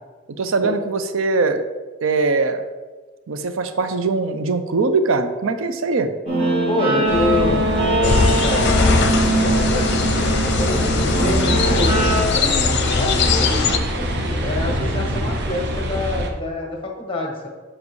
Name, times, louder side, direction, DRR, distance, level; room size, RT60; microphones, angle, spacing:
voice 1, 0.4-1.6 2.0-2.6 3.3-6.1, right 3 dB, 85° right, 9 dB, 0.5 m, -21 dB
Guitar, 6.3-12.2, right 1 dB, 35° right, 1.7 m, -21 dB
voice 2, 6.7-17.5, left 2 dB, 25° left, 1 dB, 1.2 m, -27 dB
sound 1, 7.1-16.3, equal, 60° right, 0.8 m, -25 dB
sound 2, 8.0-13.8, left 4 dB, 60° left, 0.6 m, -20 dB
7.4 x 5.9 x 3.1 m, 1.3 s
head